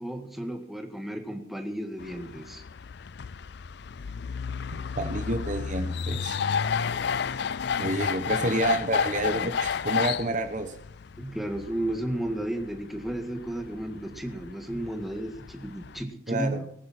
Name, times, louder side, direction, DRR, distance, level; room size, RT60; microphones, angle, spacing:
voice 1, 0.0-2.6 11.2-16.7, right 1 dB, ahead, 4 dB, 1.8 m, -33 dB
sound 1, 2.0-16.0, left 6 dB, 55° left, 0.4 m, -32 dB
voice 2, 5.0-6.4 7.8-10.7 16.3-16.6, right 1 dB, 40° right, 8 dB, 1.1 m, -29 dB
19.5 x 11.0 x 4.3 m, 0.73 s
head